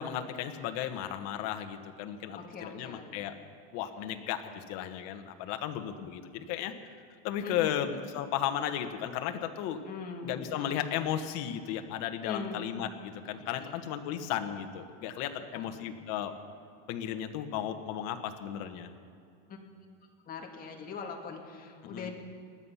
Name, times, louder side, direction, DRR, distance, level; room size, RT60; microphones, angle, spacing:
voice 1, 0.0-3.3 3.7-6.7 7.2-9.8 10.2-16.3 16.9-18.9 21.8-22.1, left 10 dB, 55° left, 6 dB, 1.4 m, -35 dB
voice 2, 2.3-3.1 7.4-7.7 9.9-10.5 12.2-12.6 13.6-13.8 15.5-15.7 19.5-19.6 20.3-22.1, left 5 dB, 30° left, 1 dB, 2.0 m, -41 dB
20.0 x 12.5 x 5.8 m, 2.5 s
cardioid pair, 150°, 31 cm